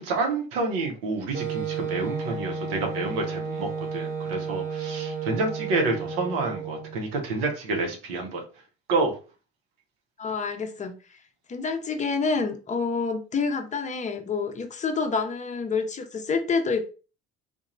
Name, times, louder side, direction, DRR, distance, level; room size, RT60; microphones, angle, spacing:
voice 1, 0.0-8.4 8.9-9.1, right 3 dB, 80° right, 0.8 m, -28 dB
Wind instrument woodwind instrument, 1.3-7.0, right 5 dB, 25° right, 1.0 m, -32 dB
voice 2, 10.2-11.2 11.5-16.9, left 4 dB, 25° left, 0.6 m, -28 dB
2.8 x 2.2 x 2.4 m
hypercardioid pair, 65°, 29 cm